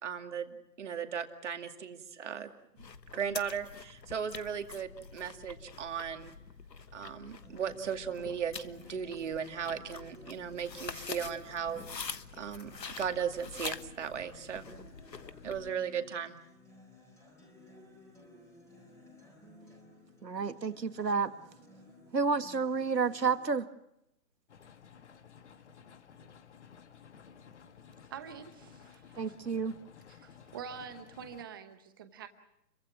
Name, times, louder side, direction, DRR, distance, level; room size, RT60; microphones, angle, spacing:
voice 1, 0.0-2.5 3.1-6.3 6.9-11.8 12.4-14.7 15.4-16.4, right 7 dB, 45° right, 6 dB, 2.4 m, -37 dB
sound 1, 2.8-15.7, left 5 dB, 80° left, 1.4 m, -46 dB
Acoustic guitar, 7.4-23.4, left 1 dB, 5° left, 3.9 m, -56 dB
voice 2, 20.2-21.3 22.1-23.7 29.2-29.8, right 5 dB, 80° right, 10 dB, 1.9 m, -30 dB
sound 2, 24.5-31.4, left 7 dB, 45° left, 1.6 m, -55 dB
voice 3, 28.1-29.4 30.1-32.3, right 7 dB, 15° right, 9 dB, 0.9 m, -46 dB
30.0 x 23.5 x 6.1 m, 0.80 s
figure-of-eight pair, 150°, 49 cm